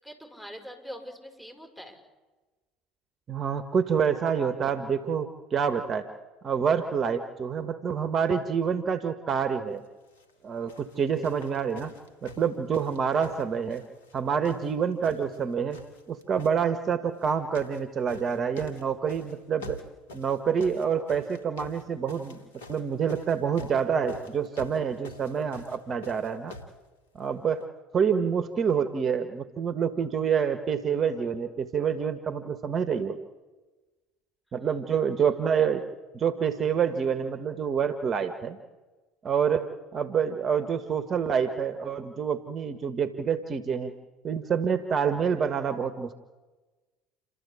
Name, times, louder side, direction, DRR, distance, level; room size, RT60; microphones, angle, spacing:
voice 1, 0.0-2.0 34.5-34.8 35.2-35.3 35.6-35.7, equal, 5° left, 3 dB, 6.5 m, -44 dB
voice 2, 3.3-6.1 6.4-9.8 10.4-11.9 12.2-13.8 14.1-15.8 16.1-19.8 20.1-22.4 22.7-26.6 27.1-27.6 27.9-33.2 34.5-35.8 36.1-38.6 39.2-43.9 44.2-46.1, right 7 dB, 40° right, 9 dB, 1.5 m, -27 dB
sound 1, 10.0-10.3 10.7-14.2 14.4-15.4 15.7-16.6 17.2-17.8 18.1-26.8 27.6-27.7, left 2 dB, 80° left, 2.4 m, -46 dB
29.0 x 13.5 x 8.5 m, 1.2 s
hypercardioid pair, 65°, 0 cm